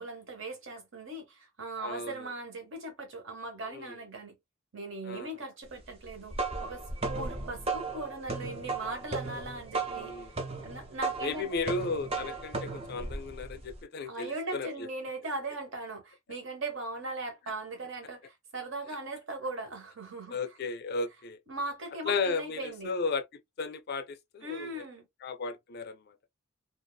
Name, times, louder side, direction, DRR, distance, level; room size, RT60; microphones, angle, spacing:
voice 1, 0.0-4.3 4.7-10.3 10.6-11.7 14.0-20.4 21.5-22.9 24.4-25.1, right 2 dB, 65° right, 1.0 m, -39 dB
voice 2, 1.8-2.3 3.7-4.0 5.0-5.5 9.9-10.3 11.2-14.9 20.3-21.4 22.0-23.2 23.6-24.8 25.2-26.2, left 4 dB, 50° left, 0.4 m, -35 dB
sound 1, 6.0-13.8, right 3 dB, 30° right, 0.6 m, -36 dB
2.7 x 2.4 x 2.2 m
head